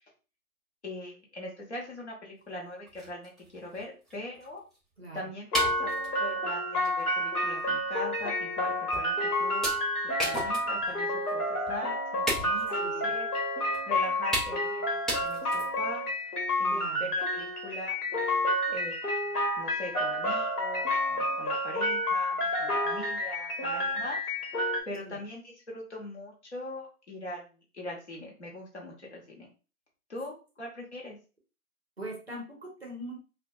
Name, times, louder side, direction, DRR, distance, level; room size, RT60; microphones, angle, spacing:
voice 1, 0.8-4.6 5.1-9.7 10.0-13.3 13.6-16.1 16.6-18.0 18.7-24.2 24.9-29.5 30.1-31.2, left 1 dB, 45° left, -2 dB, 0.8 m, -41 dB
Choping wood with an ax, 2.5-2.6 2.9-4.8 5.5-6.2 6.8-7.0 7.4-7.5 8.2-8.3 8.9-9.2 9.6-11.0 11.3-11.4 11.7-11.8 12.3-12.8 13.7-13.8 14.3-14.7 15.1-15.9, right 1 dB, ahead, 0.4 m, -35 dB
voice 2, 5.0-5.3 12.8-13.1 16.7-17.1 23.9-24.0 25.0-25.2 32.0-33.2, right 1 dB, 45° right, 0 dB, 0.6 m, -41 dB
sound 1, 5.5-24.8, left 1 dB, 75° left, 1.0 m, -30 dB
2.3 x 2.1 x 2.6 m, 0.34 s
hypercardioid pair, 175°, 46 cm